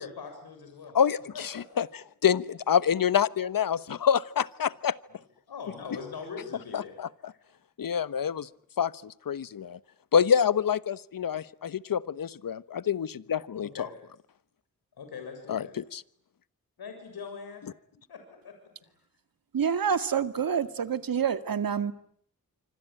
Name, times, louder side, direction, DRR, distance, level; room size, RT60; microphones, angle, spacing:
voice 1, 0.0-1.0 1.3-1.6 5.1-5.2 5.5-7.0 7.3-7.4 13.6-13.9 15.0-15.7 16.8-17.6 18.1-18.5 18.8-18.9, left 5 dB, 85° left, 5 dB, 7.2 m, -41 dB
voice 2, 1.4-1.9 2.2-4.9 6.7-7.1 7.8-8.5 8.8-9.8 10.1-13.7 15.5-16.0, left 8 dB, 65° left, 16 dB, 1.2 m, -26 dB
voice 3, 19.5-21.9, right 7 dB, 65° right, 11 dB, 2.1 m, -27 dB
26.0 x 26.0 x 8.9 m, 0.67 s
cardioid pair, 55°, 37 cm